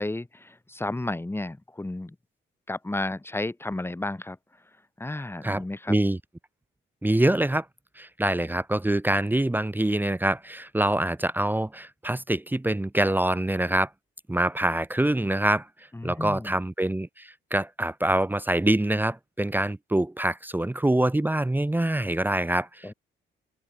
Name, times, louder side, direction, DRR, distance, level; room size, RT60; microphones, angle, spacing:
voice 1, 0.0-2.2 2.7-4.4 5.0-6.0 15.9-16.6 22.8-22.9, left 2 dB, 10° left, 3.0 m, -32 dB
voice 2, 5.9-6.2 7.0-7.7 8.0-13.9 14.3-22.9, right 1 dB, 10° right, 1.5 m, -25 dB
cardioid pair, 90°, 20 cm